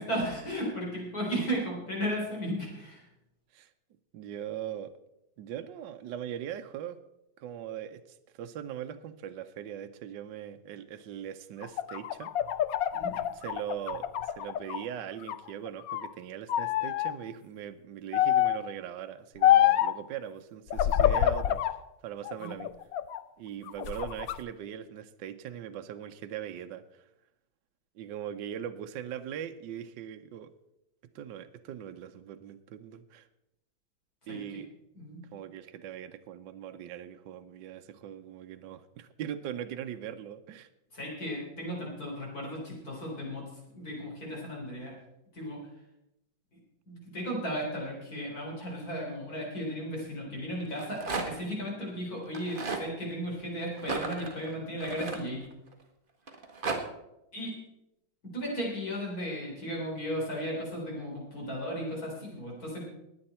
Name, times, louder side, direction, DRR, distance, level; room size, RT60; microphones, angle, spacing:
voice 1, 0.0-3.0 12.9-13.1 22.4-22.5 34.3-34.4 34.9-35.2 40.9-43.5 43.7-44.9 45.3-45.6 46.9-55.4 57.3-57.5 58.2-62.9, equal, 45° left, -2 dB, 4.3 m, -35 dB
voice 2, 4.1-4.9 5.4-7.0 7.4-12.3 13.3-21.8 22.0-22.7 23.4-27.1 27.9-30.5 31.1-33.3 34.3-34.7 35.3-40.7, right 10 dB, 70° right, 8 dB, 1.3 m, -40 dB
sound 1, 11.6-14.8 15.2-16.1 16.5-17.1 18.1-18.7 19.4-20.0 20.7-21.8 22.2-23.2 23.7-24.4, left 11 dB, 90° left, 0.7 m, -26 dB
Rattle, 50.6-51.5 52.3-52.9 53.8-55.7 56.3-56.8, right 3 dB, 30° right, 1.4 m, -35 dB
20.5 x 8.7 x 4.3 m, 0.89 s
omnidirectional pair, 2.2 m